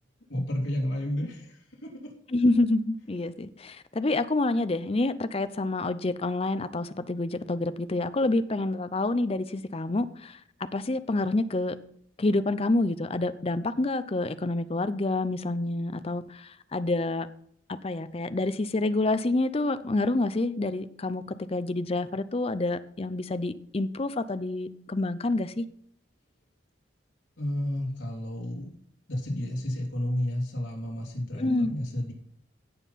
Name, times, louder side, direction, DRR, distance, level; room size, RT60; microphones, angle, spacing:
voice 1, 0.3-1.9 27.4-28.7 29.1-32.1, left 1 dB, 80° left, 3.0 m, -31 dB
voice 2, 2.3-10.4 10.7-11.8 12.2-17.3 17.8-25.7 31.4-31.7, left 2 dB, 30° left, 0.5 m, -28 dB
16.5 x 5.6 x 4.1 m
head